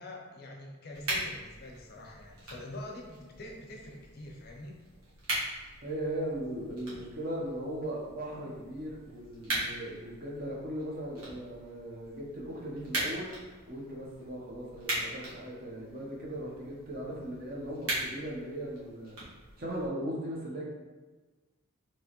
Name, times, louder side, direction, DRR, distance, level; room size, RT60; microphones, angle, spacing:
voice 1, 0.0-4.8, left 1 dB, 45° left, 0 dB, 0.5 m, -45 dB
sound 1, 0.9-19.9, right 1 dB, 75° right, 1.4 m, -40 dB
voice 2, 5.8-13.3 13.7-19.2 19.6-20.6, right 1 dB, 40° right, -4 dB, 0.8 m, -38 dB
4.6 x 3.0 x 3.0 m, 1.3 s
head